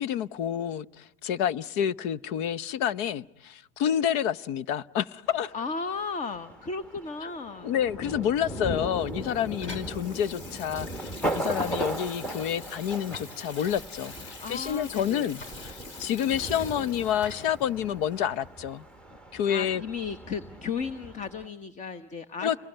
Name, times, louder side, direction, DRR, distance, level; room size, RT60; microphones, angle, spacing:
voice 1, 0.0-5.5 7.2-7.3 7.6-18.8 19.3-19.8 22.4-22.6, left 9 dB, 55° left, 0.9 m, -29 dB
Thunder, 5.3-21.5, right 1 dB, 5° left, 1.1 m, -38 dB
voice 2, 5.5-7.7 14.4-15.3 19.5-22.6, left 5 dB, 25° left, 1.1 m, -35 dB
Water tap faucet / Sink (filling or washing), 8.4-17.6 18.2-18.3, left 3 dB, 40° left, 5.0 m, -45 dB
29.5 x 22.0 x 9.0 m
supercardioid pair, 140°, 30 cm